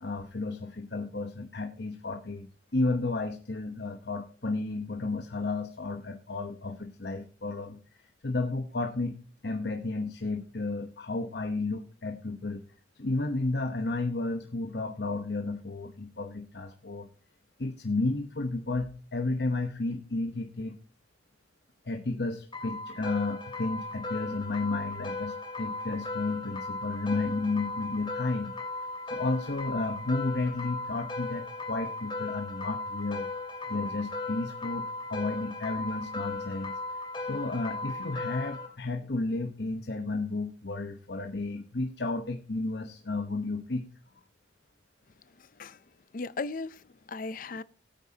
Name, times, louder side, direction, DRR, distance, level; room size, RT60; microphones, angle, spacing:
voice 1, 0.0-2.5 2.7-9.2 9.4-12.6 12.9-17.1 17.6-20.8 21.8-28.5 29.1-33.3 33.7-36.7 37.3-43.8, left 2 dB, 65° left, 1.0 m, -32 dB
sound 1, 22.5-38.7, left 3 dB, 25° left, 2.5 m, -37 dB
voice 2, 45.4-45.8 46.1-47.6, left 3 dB, 45° left, 0.5 m, -37 dB
20.0 x 9.0 x 2.8 m
head